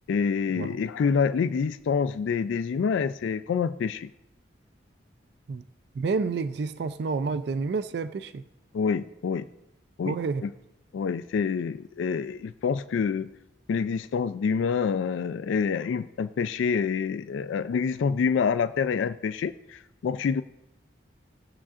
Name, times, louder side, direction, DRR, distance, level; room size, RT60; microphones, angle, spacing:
voice 1, 0.1-4.1 8.7-9.5 10.0-10.2 10.4-10.5 10.9-13.3 13.7-20.4, left 6 dB, 80° left, 12 dB, 0.3 m, -27 dB
voice 2, 5.9-8.4 10.0-10.4, right 4 dB, 60° right, 13 dB, 0.3 m, -29 dB
17.5 x 7.3 x 2.4 m, 0.91 s
head